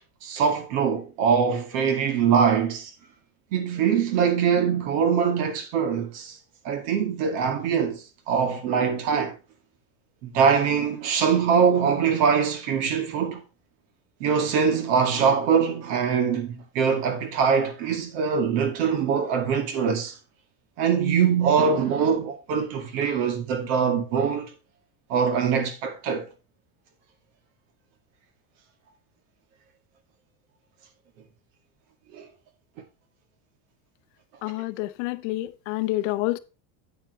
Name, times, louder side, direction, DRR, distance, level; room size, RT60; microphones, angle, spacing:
voice 1, 0.2-2.9 3.5-6.4 6.6-9.3 10.2-13.4 14.2-20.1 20.8-24.5 25.1-26.3 32.1-32.3, right 6 dB, 55° right, 2.1 m, -23 dB
voice 2, 34.4-36.4, left 18 dB, 55° left, 0.6 m, -28 dB
9.1 x 9.0 x 3.2 m
cardioid pair, 175°, 45 cm